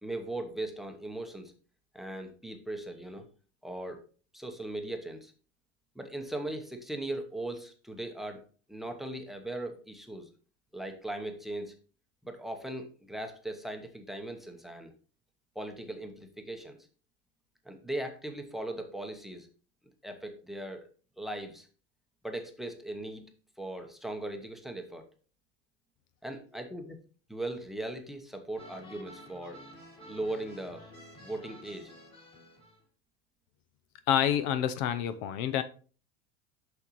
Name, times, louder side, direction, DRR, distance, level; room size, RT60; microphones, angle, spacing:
voice 1, 0.0-1.5 1.9-3.2 3.6-4.0 4.3-5.3 6.0-8.4 8.7-10.3 10.7-11.7 12.2-14.9 15.5-16.8 17.6-19.5 20.0-20.9 21.2-21.7 22.2-23.2 23.6-25.1 26.2-27.0 27.3-29.6 30.0-30.9 31.2-31.9, right 1 dB, ahead, 0.8 m, -38 dB
sound 1, 28.5-32.8, equal, 20° left, 2.1 m, -51 dB
voice 2, 34.1-35.6, left 10 dB, 55° left, 0.6 m, -28 dB
6.4 x 6.0 x 3.0 m
supercardioid pair, 130°, 30 cm